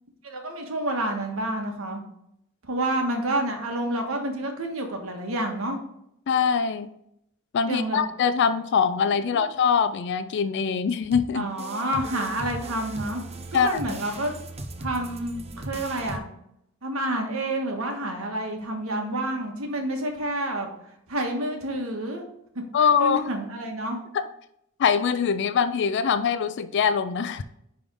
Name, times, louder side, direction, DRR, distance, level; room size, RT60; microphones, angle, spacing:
voice 1, 0.2-2.0 2.6-5.8 7.7-8.0 9.3-9.5 11.3-13.2 13.5-14.3 14.8-16.2 16.8-20.7 21.1-22.2 22.5-24.0, right 1 dB, 85° right, 3 dB, 1.4 m, -29 dB
voice 2, 6.3-6.9 7.5-11.5 13.5-14.0 22.7-23.2 24.1-24.3 24.8-27.4, left 6 dB, 55° left, 11 dB, 0.4 m, -23 dB
sound 1, 11.1-16.2, right 2 dB, 30° right, 0.7 m, -38 dB
10.0 x 3.5 x 3.7 m, 0.76 s
head